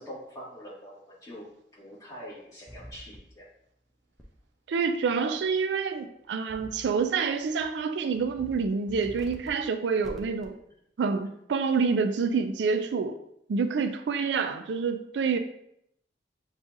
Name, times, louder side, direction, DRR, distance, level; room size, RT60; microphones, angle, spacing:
voice 1, 0.0-1.4 1.7-3.5, equal, 20° left, -6 dB, 1.5 m, -44 dB
sound 1, 2.7-3.2 4.2-4.3 6.5-6.9 7.4-7.7 8.1-8.5 8.9-9.5 10.0-10.5, equal, ahead, 0.5 m, -45 dB
voice 2, 4.7-10.6 11.0-13.2 13.5-15.4, right 5 dB, 80° right, 8 dB, 0.4 m, -27 dB
7.0 x 2.4 x 2.7 m, 0.75 s
head